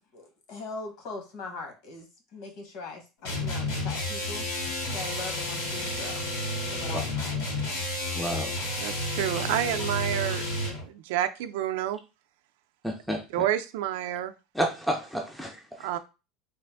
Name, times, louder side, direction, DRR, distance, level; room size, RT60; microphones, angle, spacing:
voice 1, 0.1-2.1 2.3-4.4 4.9-6.2 6.7-7.5, left 3 dB, 50° left, 3 dB, 1.0 m, -40 dB
sound 1, 3.2-10.9, left 1 dB, 70° left, 2.0 m, -31 dB
voice 2, 8.1-8.5 12.8-13.2 14.5-15.9, equal, ahead, 2 dB, 0.4 m, -30 dB
voice 3, 8.8-10.4 10.9-12.0 13.3-14.3 15.8-16.0, right 12 dB, 70° right, 8 dB, 0.4 m, -29 dB
3.2 x 2.5 x 3.4 m, 0.30 s
cardioid pair, 175°, 0 cm